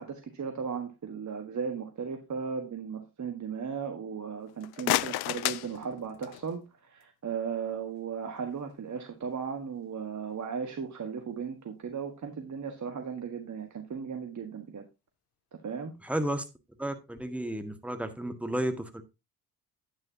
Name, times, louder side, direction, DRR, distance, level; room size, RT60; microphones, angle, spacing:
voice 1, 0.0-14.9 15.5-15.9, right 6 dB, 40° right, 5 dB, 1.6 m, -36 dB
sound 1, 4.5-6.6, left 17 dB, 55° left, 0.6 m, -31 dB
voice 2, 16.0-16.4 16.8-19.0, right 1 dB, 5° right, 6 dB, 1.8 m, -32 dB
9.6 x 9.4 x 2.9 m, 0.25 s
hypercardioid pair, 45°, 46 cm